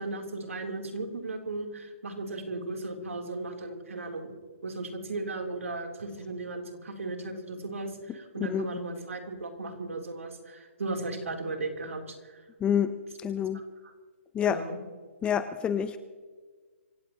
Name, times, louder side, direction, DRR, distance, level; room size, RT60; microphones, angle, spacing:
voice 1, 0.0-4.3 4.6-12.4 13.5-13.9 14.4-14.8, right 2 dB, 80° right, 3 dB, 3.4 m, -36 dB
voice 2, 12.6-12.9 13.2-13.6 14.3-14.6 15.2-16.0, left 8 dB, 15° left, 11 dB, 0.6 m, -27 dB
26.0 x 15.5 x 3.0 m, 1.5 s
hypercardioid pair, 145°, 7 cm